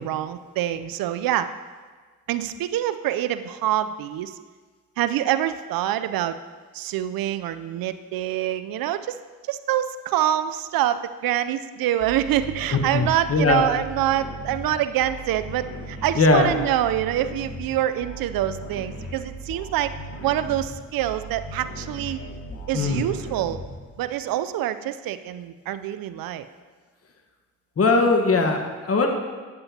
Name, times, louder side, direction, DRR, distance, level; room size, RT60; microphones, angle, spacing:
voice 1, 0.0-1.6 2.3-4.4 5.0-6.4 6.7-9.2 9.5-20.0 20.2-22.2 22.7-23.6 24.0-26.5, right 12 dB, 70° right, 13 dB, 0.5 m, -26 dB
sound 1, 12.0-24.3, right 1 dB, 70° left, 2.2 m, -38 dB
voice 2, 12.9-13.6 16.1-16.5 22.7-23.1 27.8-29.1, left 3 dB, 40° left, 4 dB, 1.3 m, -20 dB
9.5 x 7.7 x 2.8 m, 1.4 s
supercardioid pair, 55°, 37 cm